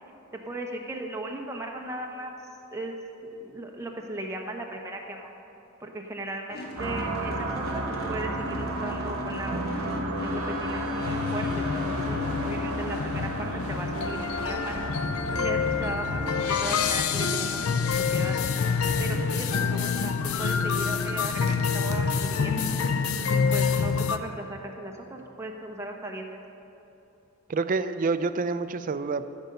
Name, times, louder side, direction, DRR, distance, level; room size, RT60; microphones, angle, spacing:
voice 1, 0.5-2.4 2.7-2.9 3.2-5.3 5.8-9.6 10.2-14.9 15.3-17.6 18.1-18.4 19.0-22.7 23.3-26.3, right 1 dB, 15° right, 1 dB, 1.0 m, -37 dB
sound 1, 6.5-24.4, left 1 dB, 50° left, 1.4 m, -41 dB
sound 2, 6.8-17.0, equal, 75° right, 1.0 m, -32 dB
sound 3, 11.0-24.2, left 5 dB, 80° left, 0.5 m, -27 dB
voice 2, 27.5-29.3, right 4 dB, 40° right, 11 dB, 0.4 m, -27 dB
13.5 x 5.2 x 6.7 m, 2.9 s
head